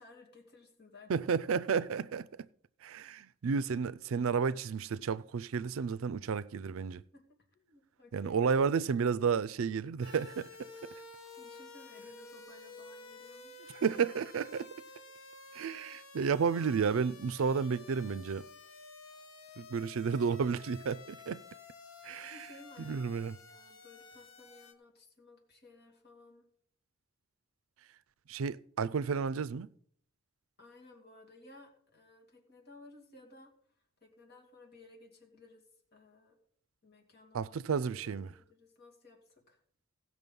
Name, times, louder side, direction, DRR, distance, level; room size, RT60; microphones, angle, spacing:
voice 1, 0.0-1.3 7.1-8.4 11.4-13.8 14.9-15.0 22.3-26.5 30.6-35.6 35.9-36.4 36.8-39.6, left 2 dB, 50° left, 2.7 m, -57 dB
voice 2, 1.1-2.3 2.8-7.0 8.1-10.7 13.8-14.7 15.5-18.5 19.6-21.4 22.0-22.3 22.8-23.3 28.3-29.7 37.3-38.3, right 6 dB, 80° right, 0.4 m, -32 dB
sound 1, 10.0-24.7, left 3 dB, 80° left, 1.3 m, -52 dB
16.5 x 6.3 x 5.3 m
head